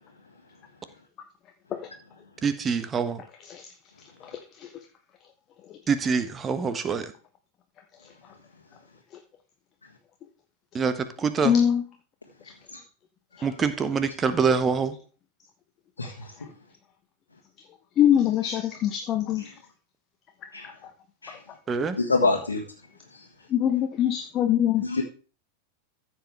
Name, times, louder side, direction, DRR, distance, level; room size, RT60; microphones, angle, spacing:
voice 1, 2.4-3.2 5.9-7.1 10.7-11.5 13.4-15.0 21.7-22.0, right 5 dB, 20° right, 11 dB, 1.2 m, -25 dB
voice 2, 4.2-4.7 11.4-11.8 18.0-19.4 20.6-20.7 23.5-24.8, left 10 dB, 30° left, 6 dB, 1.0 m, -23 dB
voice 3, 16.0-16.3 18.4-18.5 19.4-19.5 20.5-20.7 21.2-21.4 22.0-22.6 23.1-23.3 24.7-25.0, left 3 dB, 75° left, 0 dB, 1.6 m, -27 dB
14.5 x 7.4 x 3.4 m, 0.37 s
figure-of-eight pair, 90°, 0 cm